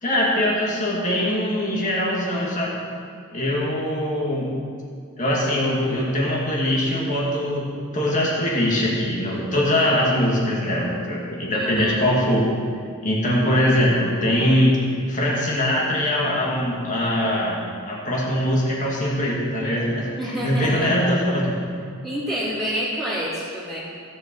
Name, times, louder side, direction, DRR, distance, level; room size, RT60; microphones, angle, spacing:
voice 1, 0.0-2.8 3.3-4.5 5.2-7.7 7.9-12.5 13.0-14.8 15.1-17.6 17.9-20.1 20.4-21.5, left 1 dB, 35° left, -4 dB, 2.3 m, -22 dB
voice 2, 11.5-12.0 20.2-21.0 22.0-23.8, equal, ahead, -11 dB, 3.2 m, -28 dB
16.0 x 7.7 x 4.6 m, 2.2 s
head